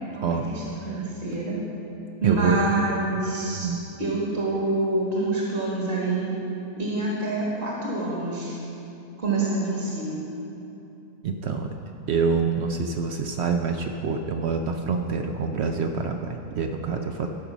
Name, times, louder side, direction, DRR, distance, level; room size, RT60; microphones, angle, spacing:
voice 1, 0.1-1.6 2.2-6.3 6.8-8.6 9.2-10.2, right 2 dB, 40° right, -5 dB, 1.7 m, -27 dB
voice 2, 2.2-2.6 3.5-3.8 11.2-11.7 12.1-17.3, right 5 dB, 65° right, 4 dB, 0.7 m, -26 dB
13.0 x 5.3 x 6.0 m, 2.9 s
omnidirectional pair, 1.6 m